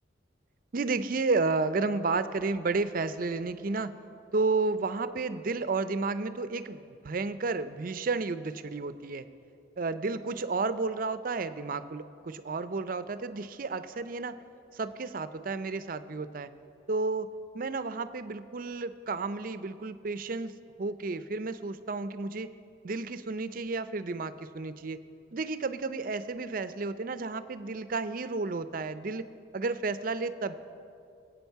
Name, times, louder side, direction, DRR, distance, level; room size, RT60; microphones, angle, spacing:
voice 1, 0.7-3.9 4.3-9.3 9.8-14.3 14.7-16.5 16.9-17.3 17.5-20.5 20.8-22.5 22.8-25.0 25.3-29.3 29.5-30.5, right 3 dB, 50° right, 12 dB, 0.5 m, -32 dB
21.0 x 8.7 x 4.6 m, 2.5 s
head